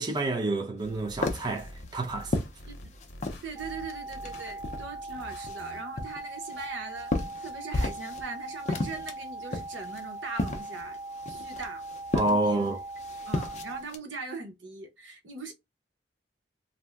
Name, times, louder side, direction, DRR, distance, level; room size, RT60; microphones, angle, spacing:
voice 1, 0.0-2.4 12.1-12.8, right 2 dB, 25° right, 0.5 m, -28 dB
sound 1, 0.8-5.8, equal, 65° left, 0.9 m, -47 dB
sound 2, 0.8-3.5 3.9-5.0 5.4-8.3 8.5-14.0, left 2 dB, 40° left, 0.5 m, -33 dB
voice 2, 3.4-7.1 7.4-11.0 11.3-11.8 12.2-12.6 13.3-15.5, right 4 dB, 85° right, 0.8 m, -40 dB
sound 3, 3.5-13.8, right 2 dB, ahead, 0.8 m, -40 dB
2.6 x 2.1 x 3.3 m
head